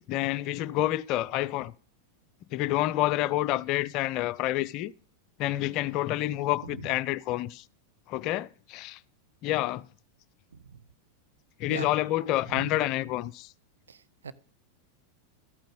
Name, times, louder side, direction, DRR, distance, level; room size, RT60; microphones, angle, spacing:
voice 1, 0.0-1.7 2.5-4.9 5.4-7.6 8.1-9.0 9.4-9.8 11.6-13.5, left 15 dB, 40° left, 0.5 m, -28 dB
voice 2, 6.6-7.0 10.5-10.6 11.7-11.9 12.5-12.9 13.9-14.0 14.2-14.3, right 6 dB, 70° right, 0.8 m, -39 dB
13.0 x 9.2 x 5.3 m
figure-of-eight pair, 90°, 0 cm